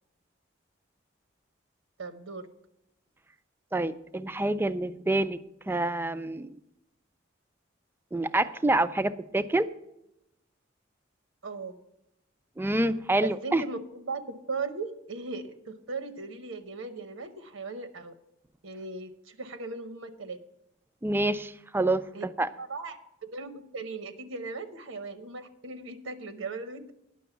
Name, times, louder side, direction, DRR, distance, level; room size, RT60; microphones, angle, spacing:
voice 1, 2.0-2.5 11.4-11.8 13.2-18.1 18.6-20.4 22.1-22.2 22.6-26.9, right 3 dB, 80° right, 9 dB, 0.8 m, -38 dB
voice 2, 3.7-5.4 5.7-6.5 8.1-9.7 12.6-13.6 21.0-22.0 22.4-22.5, right 2 dB, 10° right, 13 dB, 0.4 m, -27 dB
10.5 x 6.2 x 7.0 m, 0.85 s
head